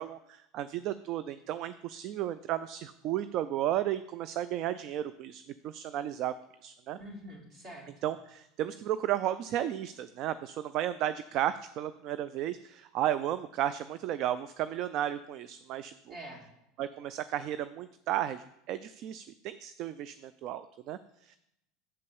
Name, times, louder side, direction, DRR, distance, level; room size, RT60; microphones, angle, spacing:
voice 1, 0.0-6.3 6.6-7.0 8.0-16.1 16.8-21.4, right 12 dB, 55° right, 14 dB, 0.3 m, -34 dB
voice 2, 7.0-8.1 16.1-16.4, equal, 40° right, -2 dB, 3.3 m, -46 dB
6.7 x 5.4 x 7.0 m, 0.83 s
hypercardioid pair, 90°, 0 cm